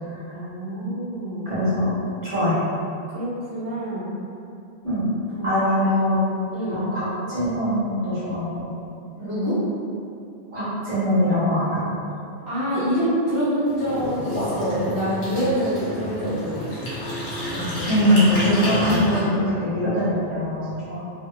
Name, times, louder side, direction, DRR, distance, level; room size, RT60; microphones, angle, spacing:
voice 1, 0.3-1.5 3.1-4.1 5.3-6.0 6.5-6.9 9.2-9.6 12.5-16.9, equal, 25° right, -12 dB, 0.5 m, -26 dB
voice 2, 1.4-1.9 2.2-2.6 4.8-5.1 5.4-6.3 6.7-8.7 10.5-11.8 17.9-21.0, equal, 50° right, -10 dB, 1.0 m, -22 dB
sound 1, 13.6-19.2, left 1 dB, 55° left, 0.9 m, -28 dB
2.8 x 2.0 x 2.6 m, 2.6 s
omnidirectional pair, 1.1 m